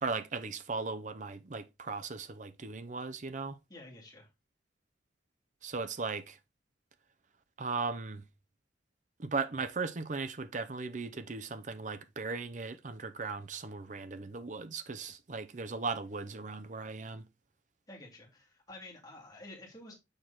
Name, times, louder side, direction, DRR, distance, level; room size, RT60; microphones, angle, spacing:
voice 1, 0.0-3.6 5.6-6.4 7.6-8.2 9.2-17.3, right 4 dB, 40° right, 0.6 m, -37 dB
voice 2, 3.7-4.3 17.9-19.9, left 2 dB, 20° left, 2.4 m, -50 dB
6.5 x 4.6 x 3.9 m
head